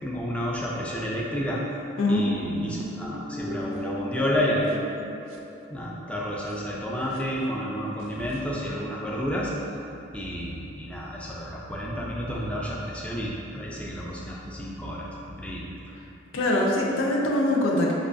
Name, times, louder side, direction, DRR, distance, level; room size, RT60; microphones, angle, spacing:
voice 1, 0.0-1.6 2.1-4.9 5.7-9.5 10.1-15.7, equal, 5° left, -4 dB, 0.3 m, -30 dB
sound 1, 2.4-6.1 6.5-6.6 7.1-7.2 8.0-8.4, equal, 75° right, 0.4 m, -36 dB
voice 2, 16.3-17.9, left 1 dB, 85° left, -2 dB, 0.5 m, -23 dB
5.2 x 2.2 x 2.6 m, 2.9 s
head